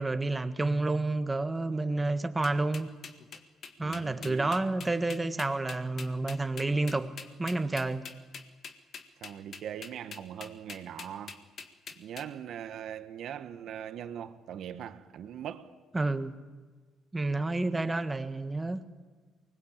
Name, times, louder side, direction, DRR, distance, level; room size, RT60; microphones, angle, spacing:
voice 1, 0.0-2.9 3.8-8.1 15.9-16.4 17.1-18.9, right 2 dB, 15° right, 1.6 m, -30 dB
sound 1, 2.4-12.2, left 6 dB, 50° left, 1.9 m, -44 dB
voice 2, 3.8-4.5 9.2-11.4 12.0-15.7 17.2-17.4, right 9 dB, 65° right, 1.3 m, -41 dB
24.0 x 20.5 x 8.5 m
cardioid pair, 95°, 0 cm